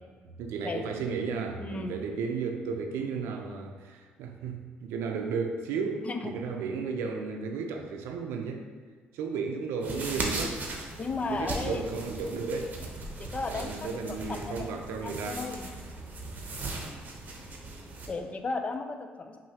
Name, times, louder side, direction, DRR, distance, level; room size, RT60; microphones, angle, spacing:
voice 1, 0.2-8.6 9.1-10.6 11.3-12.8 13.5-15.5, right 5 dB, 80° right, 4 dB, 0.5 m, -34 dB
voice 2, 1.6-2.0 6.0-6.4 11.0-11.8 13.2-14.8 15.0-15.7 18.1-19.4, left 3 dB, 30° left, 7 dB, 0.4 m, -35 dB
sound 1, 9.8-18.1, right 2 dB, 40° right, 0.8 m, -38 dB
5.6 x 2.7 x 2.8 m, 1.5 s
supercardioid pair, 75°, 4 cm